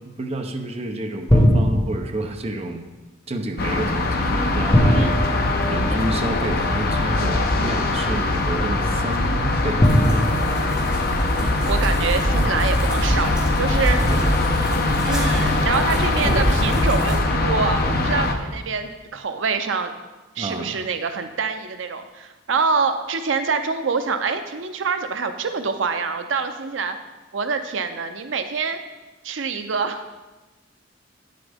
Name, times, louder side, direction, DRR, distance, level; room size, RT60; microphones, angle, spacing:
voice 1, 0.2-2.8 3.3-10.2 14.0-14.8 20.4-20.8, right 2 dB, 35° right, 5 dB, 0.7 m, -30 dB
sound 1, 1.3-2.3 4.7-6.4 7.5-7.6 9.8-11.5, equal, 20° left, 1.1 m, -20 dB
sound 2, 3.6-18.3, left 2 dB, 55° left, 0.8 m, -22 dB
sound 3, 9.8-17.2, right 1 dB, 5° right, 2.3 m, -26 dB
voice 2, 11.3-14.0 15.0-19.9 20.4-27.0 27.3-28.8 29.2-30.0, right 5 dB, 75° right, 8 dB, 0.6 m, -25 dB
9.8 x 7.6 x 3.5 m, 1.2 s
head